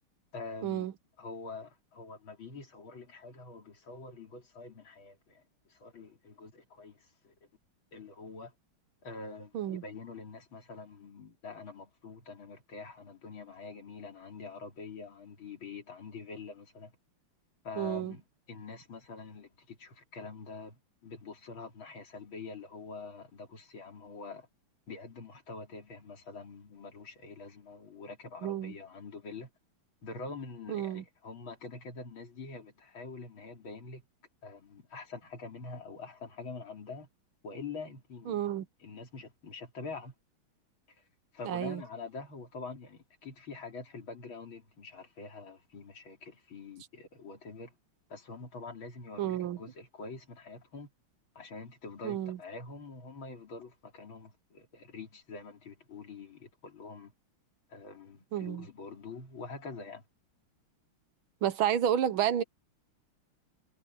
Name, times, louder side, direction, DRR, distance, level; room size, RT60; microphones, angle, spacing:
voice 1, 0.3-0.9 1.2-7.3 7.9-8.5 9.0-16.9 17.6-24.5 24.9-29.5 30.0-34.0 34.4-37.1 37.4-38.4 38.8-40.1 41.0-41.1 41.3-47.8 48.1-50.9 51.4-57.1 57.7-60.0, left 4 dB, 65° left, 3.9 m, -45 dB
voice 2, 17.8-18.1 28.4-28.7 30.7-31.0 38.3-38.7 41.5-41.8 49.2-49.6 52.0-52.4 58.3-58.7 61.4-62.4, right 10 dB, 70° right, 1.6 m, -30 dB
omnidirectional pair, 2.4 m